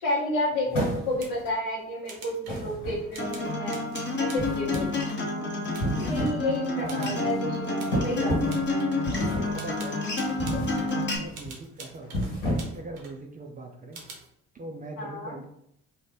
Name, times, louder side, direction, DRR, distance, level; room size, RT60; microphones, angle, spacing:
voice 1, 0.0-3.8 4.2-5.0 6.0-8.7 15.0-15.4, left 1 dB, 60° left, -5 dB, 0.8 m, -31 dB
sound 1, 0.7-1.4 2.5-3.4 4.4-5.0 5.7-6.5 6.8-7.1 7.9-8.6 9.1-9.6 10.4-10.8 11.2-11.5 12.0-12.9, equal, 80° left, 1.3 m, -31 dB
sound 2, 0.9-1.6 2.0-2.6 3.1-5.3 5.7-6.4 6.9-7.2 7.8-8.0 8.5-9.0 9.5-11.0 11.3-13.2 13.9-14.3, right 4 dB, 70° right, 0.8 m, -46 dB
Acoustic guitar, 3.2-11.2, left 2 dB, 25° left, 0.8 m, -29 dB
voice 2, 6.8-7.3 9.1-10.0 10.4-12.3 12.7-14.0 14.5-15.5, right 2 dB, 20° right, 2 dB, 0.4 m, -40 dB
2.8 x 2.1 x 3.2 m, 0.73 s
hypercardioid pair, 50°, 41 cm